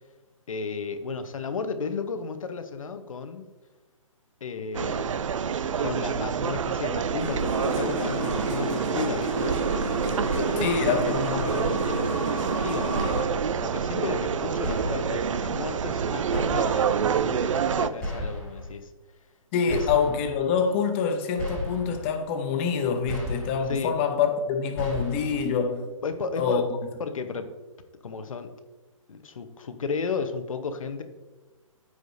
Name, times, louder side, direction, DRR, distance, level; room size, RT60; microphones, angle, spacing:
voice 1, 0.5-3.5 4.4-5.2 5.8-9.6 10.1-11.1 11.4-13.0 13.5-18.9 19.7-19.9 23.7-23.9 26.0-26.7 27.0-27.5 28.0-28.5 29.1-31.0, left 5 dB, 70° left, 1.0 m, -34 dB
sound 1, 4.7-17.9, right 7 dB, 65° right, 0.5 m, -28 dB
sound 2, 7.0-13.2, right 2 dB, 20° right, 2.0 m, -30 dB
voice 2, 10.6-11.7 19.5-25.9 26.3-26.6, left 6 dB, 20° left, 0.8 m, -26 dB
sound 3, 12.9-13.6 14.6-15.3 16.3-17.0 18.0-18.7 19.7-20.4 21.4-22.1 23.1-23.8 24.8-25.5, left 1 dB, 5° left, 2.6 m, -34 dB
14.0 x 4.9 x 2.7 m
hypercardioid pair, 155°, 18 cm